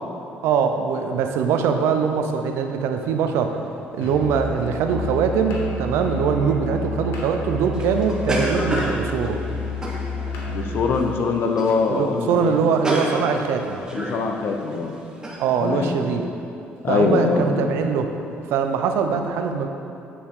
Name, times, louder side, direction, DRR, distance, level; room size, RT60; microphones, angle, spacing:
voice 1, 0.4-3.6 3.9-9.4 11.9-13.8 15.4-16.3 16.9-18.1 18.5-19.7, right 6 dB, 85° right, 5 dB, 0.6 m, -22 dB
Musical instrument, 4.0-11.1, left 2 dB, 90° left, 1.3 m, -30 dB
sound 1, 7.7-10.4 10.9-11.2 11.5-11.8 12.1-12.2 12.4-14.3 14.7-14.8 15.2-15.4, right 1 dB, 15° right, 1.2 m, -28 dB
voice 2, 10.5-12.5 13.9-14.9 15.6-15.9 16.8-17.7, left 4 dB, 60° left, 3 dB, 0.8 m, -22 dB
8.3 x 7.1 x 3.8 m, 2.8 s
cardioid pair, 115°, 4 cm